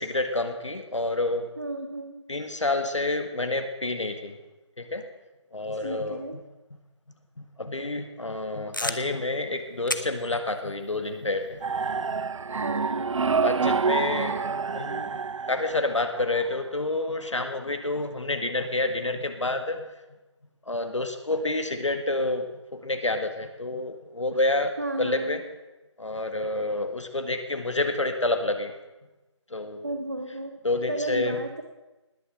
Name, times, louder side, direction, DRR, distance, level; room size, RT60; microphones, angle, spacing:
voice 1, 0.0-1.5 2.3-4.4 4.8-5.0 5.5-6.2 7.4-11.6 12.7-13.1 13.4-14.4 14.7-15.2 15.5-19.9 20.7-24.7 25.0-25.4 26.0-28.7 29.5-29.9 30.6-31.4, left 2 dB, 75° left, 7 dB, 1.8 m, -28 dB
voice 2, 1.6-2.2 5.8-6.4 12.6-13.2 24.8-25.4 29.8-30.5 30.9-31.6, right 1 dB, 35° right, 6 dB, 0.9 m, -33 dB
disposable camera, 8.7-13.5, left 2 dB, 40° left, 0.8 m, -39 dB
sound 1, 11.6-16.5, right 5 dB, 90° right, 0.4 m, -27 dB
19.5 x 7.0 x 7.7 m, 1.1 s
figure-of-eight pair, 180°, 16 cm